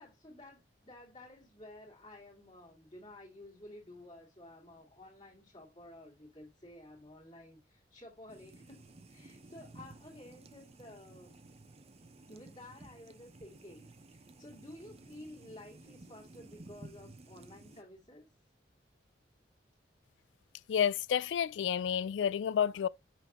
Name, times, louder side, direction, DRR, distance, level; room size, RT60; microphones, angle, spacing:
voice 1, 0.0-11.4 12.3-18.3, left 1 dB, 30° left, 2.1 m, -53 dB
sound 1, 8.3-17.8, right 2 dB, 35° right, 0.7 m, -55 dB
voice 2, 20.7-22.9, left 8 dB, 85° left, 0.3 m, -30 dB
5.9 x 5.7 x 2.9 m
head